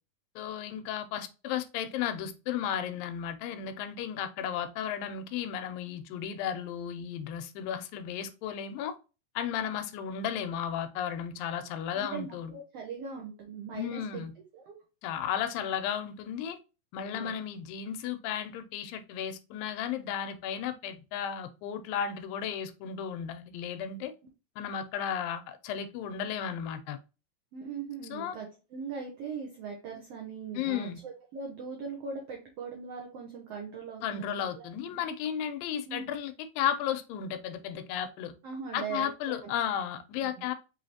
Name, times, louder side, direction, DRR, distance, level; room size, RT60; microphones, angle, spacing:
voice 1, 0.4-8.9 9.4-12.5 13.7-14.3 15.0-16.6 16.9-24.1 24.6-27.0 28.1-28.4 30.5-31.0 34.0-38.3 38.7-40.5, left 9 dB, 90° left, 2.3 m, -34 dB
voice 2, 11.9-14.2 14.5-14.8 17.0-17.4 27.5-34.7 35.9-36.1 38.4-39.5 40.2-40.5, right 5 dB, 85° right, 1.4 m, -40 dB
5.6 x 3.2 x 2.7 m
omnidirectional pair, 4.0 m